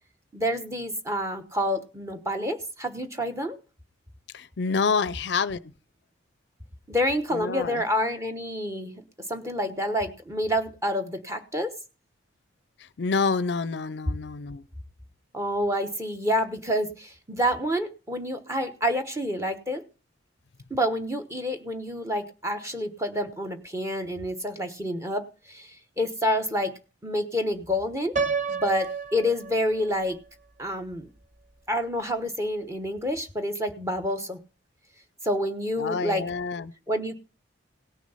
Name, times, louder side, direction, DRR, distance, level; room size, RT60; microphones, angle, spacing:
voice 1, 0.3-3.6 6.9-9.0 9.3-11.7 15.3-19.8 20.7-26.7 27.0-28.2 28.5-30.2 30.6-31.1 31.7-34.4 35.2-36.2 36.9-37.1, equal, 15° right, 7 dB, 1.0 m, -28 dB
voice 2, 4.3-5.7 7.3-7.8 13.0-14.6 35.8-36.7, left 4 dB, 60° left, 17 dB, 0.5 m, -27 dB
Piano, 28.2-30.1, right 5 dB, 40° right, 0.8 m, -30 dB
17.0 x 6.2 x 5.6 m, 0.35 s
head